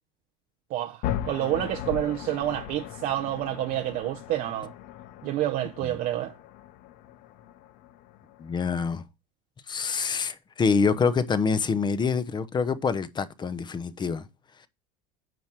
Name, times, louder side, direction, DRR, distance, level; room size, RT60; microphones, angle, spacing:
voice 1, 0.7-4.7 5.2-6.3, right 13 dB, 55° right, 0.7 m, -28 dB
sound 1, 1.0-9.0, left 11 dB, 60° left, 0.8 m, -38 dB
voice 2, 8.4-9.0 9.7-14.2, left 5 dB, 25° left, 0.9 m, -26 dB
9.3 x 4.4 x 6.0 m
hypercardioid pair, 90°, 17 cm